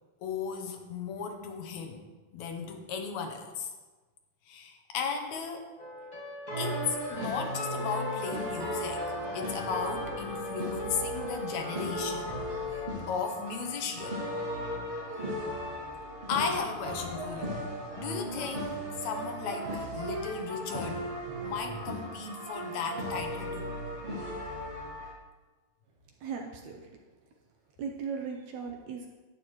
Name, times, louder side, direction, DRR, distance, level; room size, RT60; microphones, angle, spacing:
voice 1, 0.2-2.0 2.3-3.7 4.5-5.7 6.6-12.4 13.1-14.2 16.3-17.6 18.0-21.0 21.4-23.8, left 6 dB, 70° left, 4 dB, 1.8 m, -35 dB
sound 1, 5.8-12.9, equal, 40° left, 0.6 m, -40 dB
sound 2, 6.5-25.1, equal, 25° right, 1.7 m, -36 dB
voice 2, 26.2-26.8 27.8-29.1, right 6 dB, 75° right, 1 dB, 1.7 m, -37 dB
12.0 x 8.4 x 3.1 m, 1.3 s
omnidirectional pair, 3.9 m